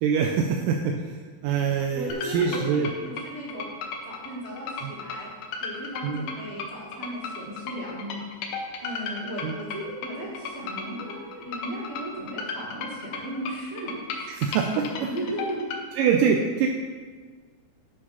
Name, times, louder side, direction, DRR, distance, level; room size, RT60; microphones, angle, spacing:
voice 1, 0.0-0.9 1.4-2.9 4.8-4.9 6.0-6.2 9.4-9.6 14.4-15.1 16.0-16.7, right 7 dB, 90° right, 2 dB, 2.2 m, -24 dB
voice 2, 1.9-3.7 4.0-5.3 5.6-8.3 8.8-14.3 14.7-15.6, equal, 30° right, -6 dB, 1.1 m, -36 dB
sound 1, 2.1-15.8, left 4 dB, 80° left, 2.4 m, -35 dB
8.6 x 4.7 x 5.6 m, 1.5 s
omnidirectional pair, 3.8 m